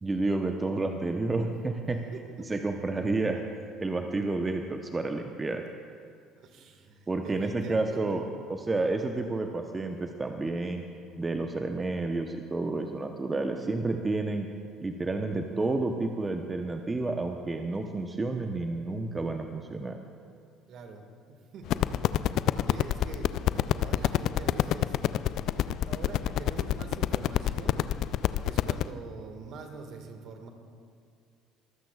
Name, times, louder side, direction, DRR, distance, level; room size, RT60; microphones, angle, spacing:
voice 1, 0.0-2.0 2.5-3.4 3.8-5.6 7.1-8.2 8.5-10.8 11.2-14.5 14.8-20.0, right 3 dB, 25° right, 4 dB, 0.9 m, -30 dB
voice 2, 2.1-2.5 5.5-5.6 6.4-8.3 13.4-13.7 20.7-27.9 28.4-30.5, right 4 dB, 55° right, 5 dB, 1.8 m, -45 dB
sound 1, 21.7-28.8, left 12 dB, 60° left, 0.4 m, -27 dB
23.0 x 15.0 x 2.4 m, 2.3 s
hypercardioid pair, 60°, 0 cm